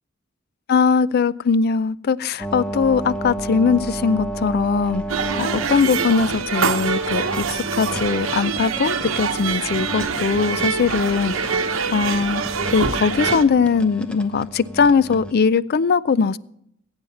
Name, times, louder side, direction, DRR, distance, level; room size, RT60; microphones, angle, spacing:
voice 1, 0.7-11.5 11.9-12.4 12.7-16.4, left 5 dB, 50° left, 19 dB, 0.4 m, -20 dB
sound 1, 2.4-15.3, right 1 dB, 5° left, 0.8 m, -33 dB
sound 2, 5.1-13.4, right 5 dB, 90° right, 0.9 m, -24 dB
20.0 x 8.9 x 4.2 m, 0.73 s
head